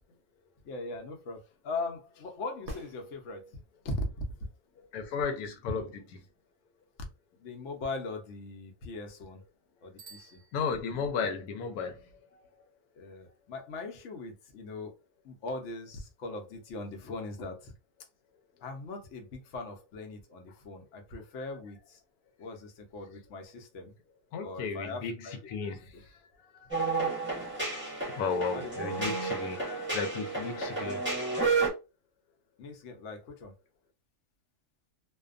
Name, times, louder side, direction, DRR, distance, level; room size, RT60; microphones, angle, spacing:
voice 1, 0.6-3.5 3.8-4.1 7.4-9.4 9.8-10.4 12.9-14.9 15.2-17.7 18.6-22.0 22.4-23.9 24.4-25.4 25.6-25.8 28.5-28.7 32.6-33.5, left 2 dB, 60° left, 0.9 m, -40 dB
sound 1, 2.6-3.8 7.7-7.8, equal, 60° right, 0.5 m, -45 dB
voice 2, 4.8-5.9 10.5-12.5 24.3-26.8 27.3-27.5 28.2-31.1, left 5 dB, 85° left, 1.1 m, -35 dB
Bicycle bell, 9.9-11.3, right 5 dB, 30° right, 1.2 m, -55 dB
sound 2, 26.7-31.7, right 3 dB, 10° right, 0.7 m, -31 dB
2.6 x 2.2 x 2.4 m
omnidirectional pair, 1.6 m